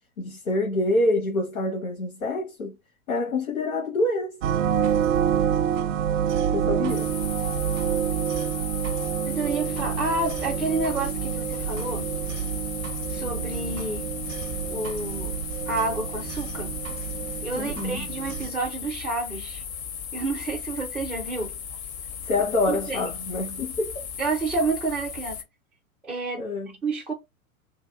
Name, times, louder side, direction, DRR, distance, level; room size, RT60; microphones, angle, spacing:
voice 1, 0.2-2.8 3.1-4.4 6.5-7.1 17.5-18.1 22.2-24.0 26.4-26.7, left 2 dB, 70° left, 1.2 m, -26 dB
grandfather's clock, 4.4-18.5, right 9 dB, 65° right, 0.5 m, -28 dB
sound 1, 6.9-25.4, left 7 dB, 50° left, 0.7 m, -36 dB
voice 2, 9.2-12.1 13.1-14.1 14.7-15.3 15.7-16.7 17.4-19.6 20.1-21.5 22.7-23.0 24.2-25.4 26.0-26.5 26.8-27.1, right 3 dB, 5° right, 0.4 m, -29 dB
2.7 x 2.2 x 3.4 m
figure-of-eight pair, 95°, 43 cm